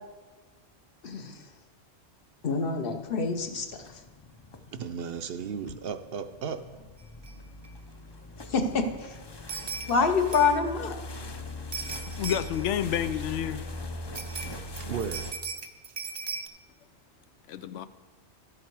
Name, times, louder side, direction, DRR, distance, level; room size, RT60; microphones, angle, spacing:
voice 1, 1.0-1.3 2.4-3.7 8.5-9.2 9.6-11.0, left 4 dB, 55° left, 1.0 m, -26 dB
sound 1, 3.0-15.3, left 2 dB, 35° left, 0.4 m, -41 dB
voice 2, 4.7-6.7 14.9-15.4, right 6 dB, 65° right, 0.7 m, -35 dB
sound 2, 7.2-7.3 7.6-7.7 9.5-10.0 10.3-10.7 11.7-12.7 14.1-16.5, right 5 dB, 40° right, 0.3 m, -37 dB
voice 3, 11.9-13.7 17.5-17.9, left 9 dB, 90° left, 0.9 m, -30 dB
12.5 x 7.5 x 4.7 m
omnidirectional pair, 1.2 m